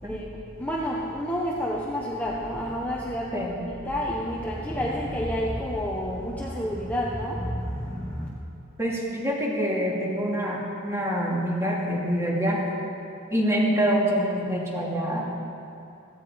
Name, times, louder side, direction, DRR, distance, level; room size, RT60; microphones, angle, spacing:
voice 1, 0.0-8.3, equal, 10° left, -4 dB, 1.2 m, -30 dB
voice 2, 8.8-12.6 13.3-15.2, equal, 15° right, -4 dB, 2.8 m, -25 dB
16.5 x 15.0 x 5.2 m, 2.7 s
head